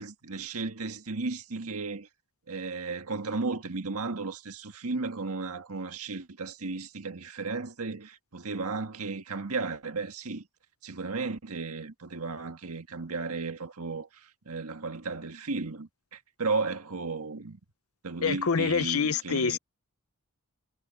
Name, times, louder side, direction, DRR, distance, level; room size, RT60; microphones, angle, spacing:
voice 1, 0.0-2.1 2.5-10.5 10.8-17.6 18.0-19.6, right 3 dB, 80° right, 1.6 m, -34 dB
voice 2, 18.2-19.6, left 6 dB, 70° left, 0.8 m, -26 dB
head